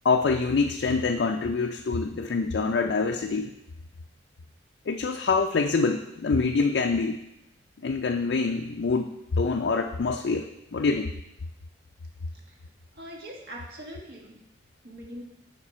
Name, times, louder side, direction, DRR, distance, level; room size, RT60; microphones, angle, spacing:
voice 1, 0.0-3.5 4.9-7.2 7.8-10.5 10.7-11.1, left 4 dB, 65° left, 3 dB, 0.4 m, -25 dB
voice 2, 13.0-14.4 14.8-15.2, equal, 55° right, -1 dB, 1.5 m, -41 dB
7.4 x 5.2 x 4.3 m, 0.84 s
head